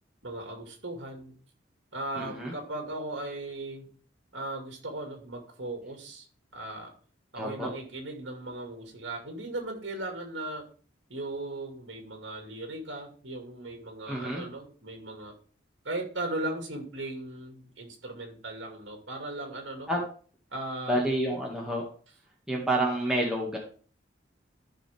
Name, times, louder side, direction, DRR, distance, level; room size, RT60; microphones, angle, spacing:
voice 1, 0.2-1.3 1.9-3.9 4.3-6.3 6.5-6.9 7.3-10.6 11.1-15.3 15.8-19.9 20.5-21.0, right 2 dB, 75° right, 3 dB, 2.3 m, -37 dB
voice 2, 2.2-2.5 7.4-7.7 14.1-14.5 19.9-20.0 20.9-21.9 22.5-23.6, right 1 dB, 5° right, -3 dB, 2.0 m, -29 dB
14.0 x 5.4 x 3.5 m, 0.42 s
head